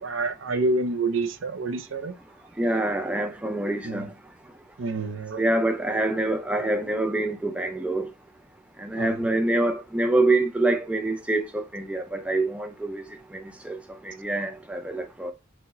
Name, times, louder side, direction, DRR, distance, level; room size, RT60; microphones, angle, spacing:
voice 1, 0.0-2.2 3.8-4.1 4.8-5.4 9.0-9.1, right 3 dB, 65° right, 0.5 m, -28 dB
voice 2, 2.6-4.1 5.4-8.1 8.8-13.0 13.6-13.8 14.0-15.3, right 2 dB, 5° right, 0.4 m, -25 dB
4.5 x 2.1 x 4.1 m
head